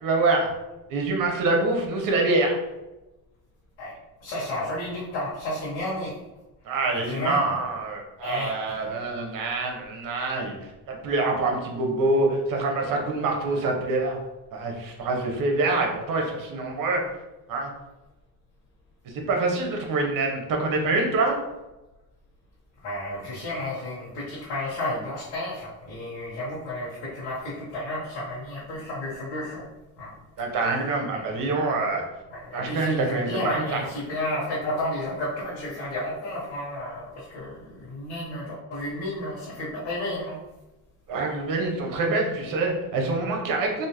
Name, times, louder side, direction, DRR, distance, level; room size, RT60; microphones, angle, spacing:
voice 1, 0.0-0.5 0.9-2.6 6.7-10.5 10.9-14.2 14.5-17.0 17.5-17.7 19.1-21.4 30.4-32.0 32.5-33.8 41.1-43.9, right 3 dB, 60° right, 1 dB, 1.0 m, -25 dB
voice 2, 4.2-6.1 6.9-7.6 8.2-8.7 22.8-29.6 30.0-30.2 31.1-31.4 32.3-40.4, left 1 dB, 85° left, -9 dB, 1.2 m, -32 dB
3.5 x 2.8 x 3.0 m, 1.0 s
cardioid pair, 110°, 38 cm